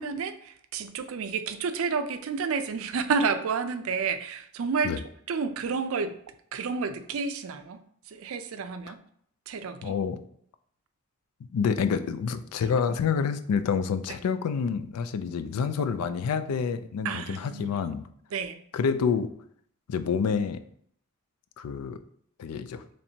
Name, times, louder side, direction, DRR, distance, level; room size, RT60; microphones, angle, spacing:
voice 1, 0.0-4.9 5.3-6.1 6.5-7.8 8.1-9.0 9.5-9.9 17.0-17.8 18.3-18.6, right 5 dB, 65° right, 9 dB, 0.4 m, -30 dB
voice 2, 9.8-10.2 11.5-18.1 18.7-19.3 19.9-20.6 21.6-22.0 22.4-22.8, left 6 dB, 85° left, 11 dB, 0.3 m, -28 dB
4.3 x 3.2 x 2.7 m, 0.66 s
head